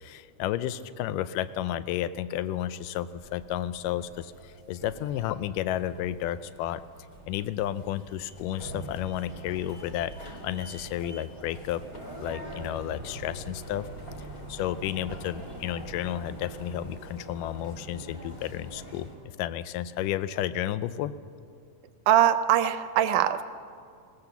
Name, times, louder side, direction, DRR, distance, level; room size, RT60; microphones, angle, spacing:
voice 1, 0.0-6.8 7.3-13.9 14.5-21.1, left 12 dB, 85° left, 14 dB, 2.2 m, -32 dB
sound 1, 3.1-19.1, right 1 dB, 30° left, 3.5 m, -44 dB
voice 2, 22.1-23.4, right 11 dB, 80° right, 11 dB, 2.1 m, -22 dB
20.0 x 19.5 x 7.0 m, 2.3 s
omnidirectional pair, 3.7 m